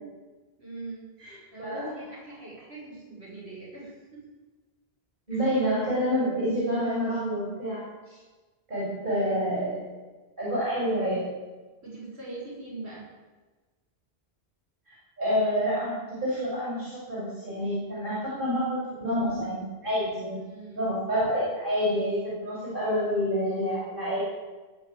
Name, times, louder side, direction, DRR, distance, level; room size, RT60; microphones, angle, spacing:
voice 1, 0.6-4.2 5.3-5.5 9.1-9.3 11.8-13.0 20.3-20.9, right 3 dB, 80° right, -5 dB, 6.4 m, -42 dB
voice 2, 5.3-8.2 8.7-9.8 10.4-11.2 14.9-20.4 20.7-24.2, equal, 50° right, -8 dB, 6.5 m, -28 dB
19.0 x 6.9 x 8.7 m, 1.3 s
omnidirectional pair, 1.1 m